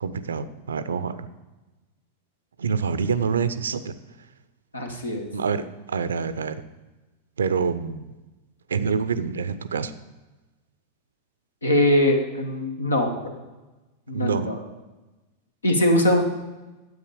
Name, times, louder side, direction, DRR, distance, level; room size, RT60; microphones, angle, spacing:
voice 1, 0.0-1.3 2.6-3.8 5.3-6.6 7.4-8.1 8.7-9.9 14.1-14.5, right 5 dB, 70° right, 14 dB, 0.5 m, -26 dB
voice 2, 4.7-5.3 11.6-13.3 14.1-14.6 15.6-16.2, left 1 dB, 80° left, 4 dB, 1.3 m, -22 dB
9.7 x 7.9 x 4.9 m, 1.1 s
figure-of-eight pair, 90°, 0 cm